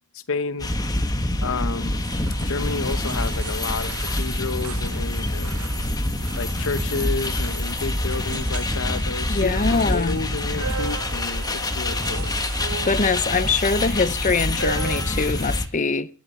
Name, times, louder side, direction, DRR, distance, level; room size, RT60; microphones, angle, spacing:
voice 1, 0.3-0.7 1.4-2.0 2.4-3.9 4.2-5.6 6.4-12.3, left 4 dB, 65° left, 0.9 m, -30 dB
sound 1, 0.6-15.7, left 1 dB, 20° left, 1.4 m, -26 dB
sound 2, 2.0-15.6, right 6 dB, 75° right, 0.8 m, -38 dB
voice 2, 9.3-10.2 12.9-16.1, left 4 dB, 35° left, 0.8 m, -23 dB
28.0 x 10.5 x 4.2 m
head